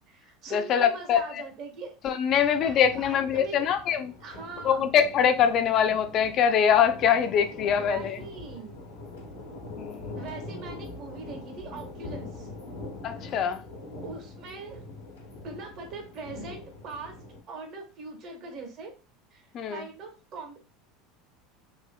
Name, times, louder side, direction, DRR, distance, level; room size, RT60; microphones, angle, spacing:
voice 1, 0.0-1.9 2.3-3.7 4.2-5.0 7.8-8.8 10.1-12.5 13.2-13.4 14.0-14.8 15.4-17.1 17.5-18.9 19.3-20.6, right 4 dB, 50° right, 1.1 m, -41 dB
voice 2, 0.5-1.4 2.0-4.1 4.6-8.2 9.7-10.1 13.0-13.6 19.5-19.9, left 8 dB, 50° left, 0.4 m, -23 dB
sound 1, 2.3-17.4, left 2 dB, 90° left, 0.9 m, -43 dB
3.2 x 2.7 x 2.3 m
hypercardioid pair, 85°, 0 cm